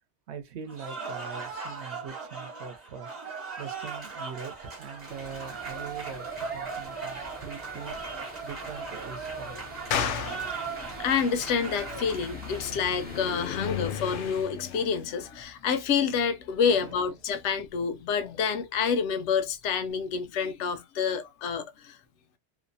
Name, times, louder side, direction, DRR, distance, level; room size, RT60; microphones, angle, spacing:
voice 1, 0.3-3.1 3.6-7.9 8.4-9.7 16.7-17.1, right 6 dB, 75° right, 0.9 m, -42 dB
Cheering / Applause, 0.7-13.3, right 4 dB, 40° right, 1.0 m, -38 dB
sound 1, 5.0-5.5 6.5-6.6 7.2-17.1 17.4-20.0, left 8 dB, 60° left, 0.6 m, -41 dB
sound 2, 5.1-14.4, equal, 15° right, 0.4 m, -47 dB
voice 2, 9.9-22.0, left 6 dB, 90° left, 0.9 m, -28 dB
2.7 x 2.0 x 2.6 m
omnidirectional pair, 1.2 m